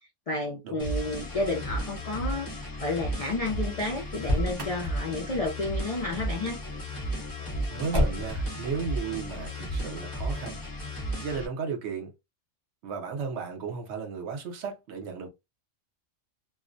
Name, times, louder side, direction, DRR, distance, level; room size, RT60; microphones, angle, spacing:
voice 1, 0.3-6.6, left 2 dB, 60° left, 0.3 m, -31 dB
sound 1, 0.8-11.5, equal, 20° left, 0.8 m, -34 dB
Motor vehicle (road), 4.1-4.9 7.9-8.5, left 1 dB, 25° right, 0.6 m, -27 dB
voice 2, 7.7-10.6 11.2-12.1 12.8-15.3, right 5 dB, 65° right, 1.0 m, -34 dB
2.4 x 2.1 x 2.5 m
omnidirectional pair, 1.3 m